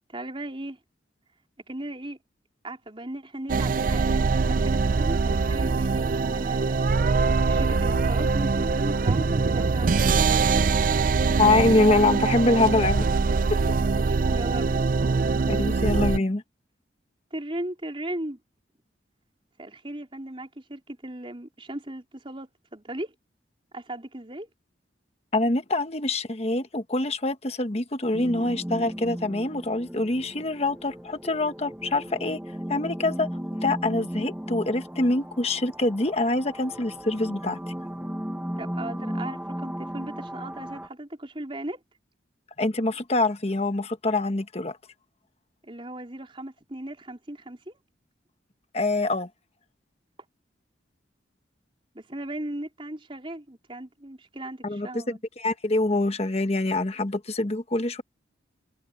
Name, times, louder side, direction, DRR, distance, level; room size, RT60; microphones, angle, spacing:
voice 1, 0.1-0.8 1.7-2.2 2.6-10.7 13.8-14.9 15.3-15.5 17.3-18.4 19.6-23.1 23.7-24.5 38.6-41.8 45.6-47.8 51.9-55.2, right 1 dB, 30° right, 4.1 m, -37 dB
sound 1, 3.5-16.2, right 4 dB, 45° right, 0.4 m, -23 dB
voice 2, 11.4-13.1 13.5-13.6 15.5-16.4 25.3-32.4 32.7-33.3 33.6-37.6 42.6-44.8 48.7-49.3 54.6-58.0, left 2 dB, 35° left, 1.2 m, -25 dB
sound 2, 28.1-40.9, equal, 5° right, 0.9 m, -36 dB
head